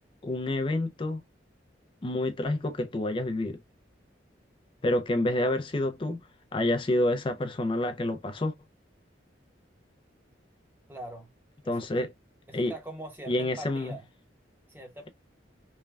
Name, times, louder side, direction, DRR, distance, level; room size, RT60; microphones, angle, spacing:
voice 1, 0.2-1.2 2.0-3.6 4.8-6.2 6.5-8.5 11.7-12.1 12.5-12.7 13.3-14.0, left 1 dB, 25° left, 0.4 m, -28 dB
voice 2, 10.9-11.3 11.6-11.9 12.5-14.1 14.7-15.1, right 1 dB, 10° right, 0.8 m, -42 dB
3.2 x 2.2 x 2.3 m
head